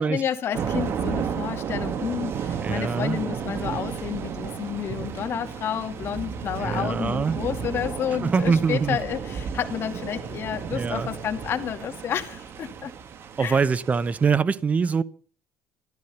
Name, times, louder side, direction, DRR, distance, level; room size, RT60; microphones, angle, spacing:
voice 1, 0.0-12.9 13.4-13.6, left 9 dB, 45° left, 2.3 m, -30 dB
Thunder / Rain, 0.5-14.3, right 7 dB, 45° right, 1.5 m, -33 dB
voice 2, 2.6-3.2 6.6-7.4 8.2-9.0 10.7-11.1 13.4-15.0, right 5 dB, 25° right, 0.8 m, -23 dB
14.0 x 13.5 x 7.1 m
cardioid pair, 130°, 6 cm